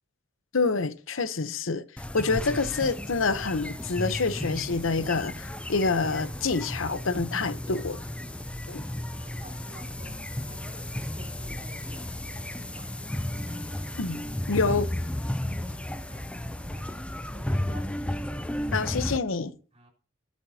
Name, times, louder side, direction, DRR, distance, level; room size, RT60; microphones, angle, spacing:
voice 1, 0.5-1.8 2.1-8.0 8.7-8.8 14.0-14.9 18.7-19.5, left 4 dB, 85° left, 0.9 m, -27 dB
sound 1, 2.0-19.2, left 1 dB, 5° left, 0.5 m, -34 dB
voice 2, 8.2-8.5 9.2-13.3 15.5-15.8 16.1-17.0 17.3-17.9 19.7-19.9, right 1 dB, 35° right, 3.4 m, -51 dB
20.0 x 8.1 x 2.8 m
head